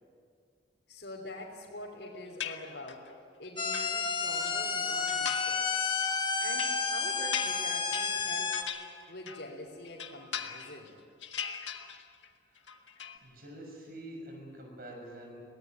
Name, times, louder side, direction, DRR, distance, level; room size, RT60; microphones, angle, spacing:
voice 1, 0.9-3.1 3.4-5.6 6.4-8.6 9.1-10.9, left 1 dB, 70° left, -4 dB, 3.4 m, -45 dB
sound 1, 2.4-3.1 3.5-4.5 5.1-5.7 6.0-9.5 9.8-10.9 11.2-12.3 12.6-13.2, left 7 dB, 85° left, 1.7 m, -40 dB
sound 2, 3.6-8.6, left 4 dB, 25° left, 1.3 m, -31 dB
voice 2, 13.2-15.4, right 1 dB, 50° right, 2 dB, 6.5 m, -46 dB
23.5 x 18.5 x 9.3 m, 2.2 s
head